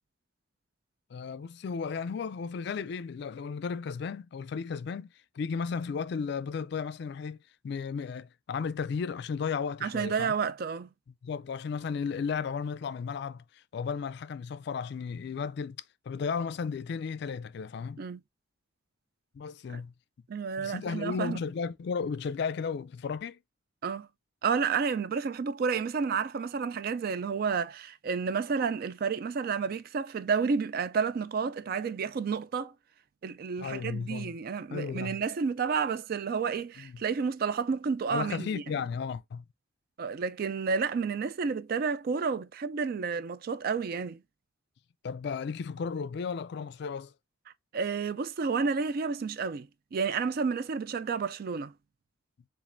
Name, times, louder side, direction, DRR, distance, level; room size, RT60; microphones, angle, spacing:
voice 1, 1.1-5.1 5.3-7.4 7.6-10.3 11.2-15.8 16.1-18.0 19.3-19.9 20.6-23.4 33.6-34.4 34.7-35.2 36.8-37.0 38.1-39.4 45.0-47.1, left 5 dB, 60° left, 0.3 m, -34 dB
voice 2, 9.8-10.9 18.0-18.2 19.7-19.8 20.3-21.4 23.8-24.1 24.4-32.7 33.2-38.6 40.0-44.2 47.7-51.7, right 5 dB, 50° right, 0.3 m, -30 dB
7.1 x 2.5 x 2.5 m
head